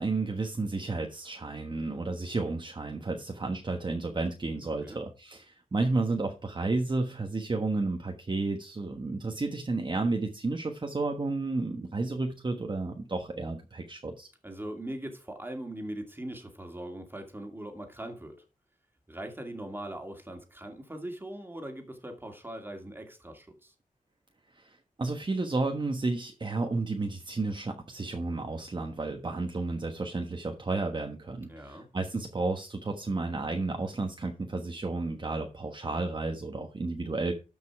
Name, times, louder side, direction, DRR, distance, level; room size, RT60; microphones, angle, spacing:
voice 1, 0.0-14.3 24.6-37.3, right 3 dB, 35° right, 1.3 m, -32 dB
voice 2, 14.4-18.4 19.1-23.7 31.5-31.9, right 1 dB, 15° right, 2.4 m, -40 dB
13.0 x 5.4 x 4.7 m
wide cardioid pair, 110°, 14 cm